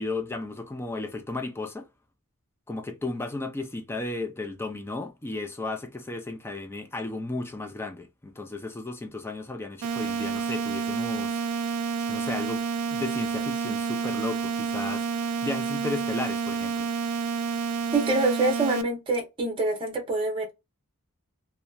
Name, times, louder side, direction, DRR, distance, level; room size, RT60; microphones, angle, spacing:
voice 1, 0.0-1.9 2.7-11.4 12.1-16.9, left 2 dB, 10° left, 0.4 m, -34 dB
sound 1, 9.8-18.8, right 5 dB, 75° right, 0.4 m, -29 dB
voice 2, 17.9-20.5, right 2 dB, 25° right, 0.9 m, -25 dB
2.8 x 2.1 x 2.3 m
head